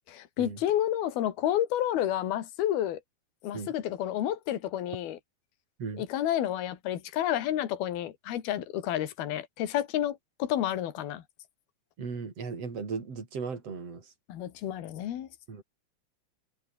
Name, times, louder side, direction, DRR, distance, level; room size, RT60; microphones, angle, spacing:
voice 1, 0.1-3.0 3.4-5.2 6.0-11.2 14.3-15.3, left 12 dB, 65° left, 3.9 m, -30 dB
voice 2, 12.0-14.1 15.5-15.6, right 5 dB, 35° right, 5.5 m, -37 dB
omnidirectional pair, 4.8 m